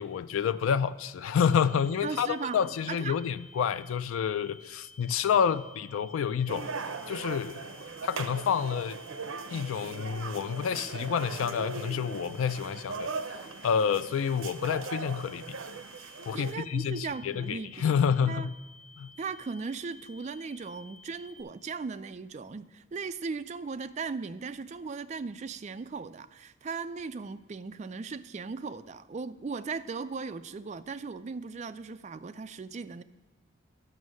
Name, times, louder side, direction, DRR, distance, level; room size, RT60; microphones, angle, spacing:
voice 1, 0.0-6.7 7.1-7.8 8.0-9.0 9.5-13.1 13.6-15.4 16.3-18.5 19.0-19.1, left 7 dB, 75° left, 13 dB, 0.3 m, -29 dB
sound 1, 1.4-21.4, left 3 dB, 40° left, 1.6 m, -54 dB
voice 2, 2.0-2.6 2.9-3.2 16.3-18.5 19.2-33.0, right 4 dB, 35° right, 12 dB, 0.3 m, -37 dB
sound 2, 6.5-16.5, right 4 dB, 75° right, 0.7 m, -39 dB
11.0 x 6.1 x 6.3 m, 1.3 s
head